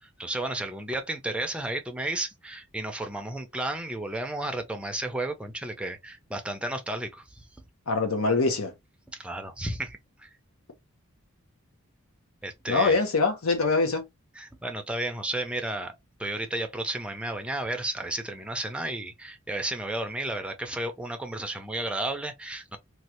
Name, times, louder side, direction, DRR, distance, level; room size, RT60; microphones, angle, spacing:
voice 1, 0.2-7.2 9.2-10.3 12.4-13.0 14.4-22.8, right 1 dB, 5° right, 0.5 m, -33 dB
voice 2, 7.9-8.7 12.7-14.0, left 3 dB, 75° left, 0.9 m, -24 dB
3.1 x 2.4 x 2.9 m
head